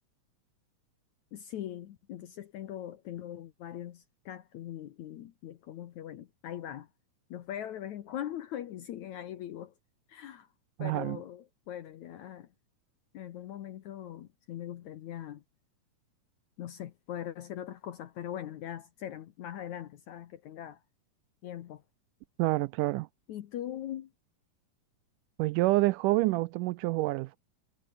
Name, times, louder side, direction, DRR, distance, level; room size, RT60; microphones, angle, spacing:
voice 1, 1.3-6.9 7.3-9.7 10.1-10.5 10.8-12.5 13.1-15.4 16.6-20.8 21.4-21.8 23.3-24.1, left 11 dB, 65° left, 2.2 m, -41 dB
voice 2, 10.8-11.2 22.4-23.1 25.4-27.4, right 19 dB, 80° right, 1.9 m, -27 dB
omnidirectional pair, 4.0 m